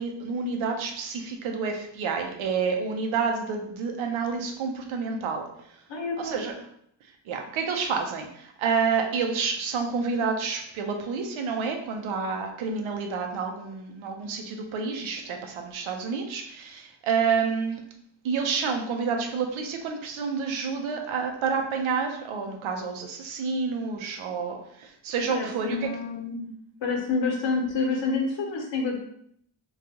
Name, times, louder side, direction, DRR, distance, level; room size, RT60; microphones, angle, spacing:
voice 1, 0.0-5.4 6.2-6.5 7.3-17.8 18.2-25.9, right 5 dB, 85° right, 4 dB, 0.7 m, -29 dB
voice 2, 5.9-6.5 25.3-26.5 26.8-29.0, left 4 dB, 65° left, 1 dB, 1.0 m, -28 dB
3.8 x 2.4 x 2.8 m, 0.69 s
cardioid pair, 65°, 47 cm